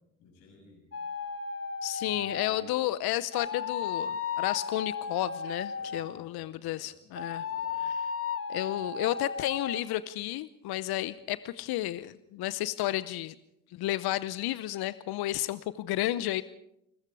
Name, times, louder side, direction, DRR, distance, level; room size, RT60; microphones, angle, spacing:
voice 1, 0.2-0.9 2.0-2.6 5.8-7.1 7.4-7.8, left 4 dB, 80° left, 0 dB, 7.6 m, -55 dB
sound 1, 0.9-2.7 3.3-6.2 7.1-9.8, left 6 dB, 30° left, 1.7 m, -35 dB
voice 2, 1.8-7.5 7.8-7.9 8.5-13.3 13.7-16.4, left 15 dB, 60° left, 16 dB, 0.9 m, -32 dB
28.5 x 21.0 x 4.8 m, 0.81 s
hypercardioid pair, 50°, 42 cm